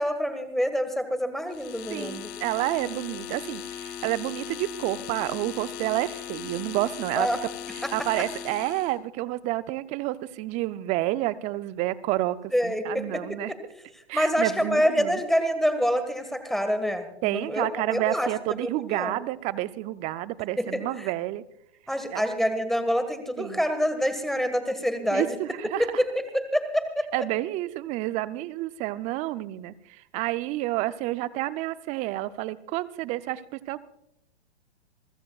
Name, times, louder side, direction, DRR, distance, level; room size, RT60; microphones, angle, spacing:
voice 1, 0.0-2.3 7.2-7.4 7.8-7.9 12.5-13.4 14.1-19.2 20.6-20.7 21.0-21.1 21.9-25.4 26.0-27.1, equal, ahead, 8 dB, 1.6 m, -26 dB
sound 1, 1.5-9.0, left 9 dB, 30° left, 1.6 m, -38 dB
voice 2, 1.9-7.3 7.7-13.5 14.1-15.2 17.2-21.4 22.1-22.2 23.4-23.6 25.1-25.9 27.1-33.8, right 16 dB, 20° right, 17 dB, 0.5 m, -29 dB
27.5 x 15.0 x 2.4 m, 0.82 s
hypercardioid pair, 120°, 34 cm